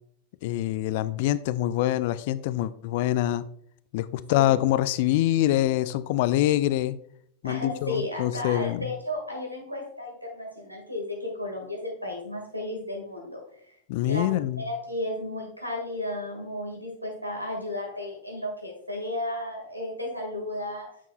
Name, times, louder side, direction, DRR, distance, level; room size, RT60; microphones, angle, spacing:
voice 1, 0.4-3.4 3.9-7.0 7.4-8.9 13.9-14.6, left 14 dB, 50° left, 15 dB, 0.3 m, -25 dB
voice 2, 7.4-13.8 14.0-20.9, left 1 dB, 90° right, 1 dB, 1.9 m, -34 dB
8.7 x 6.1 x 2.3 m, 0.68 s
figure-of-eight pair, 90°, 0 cm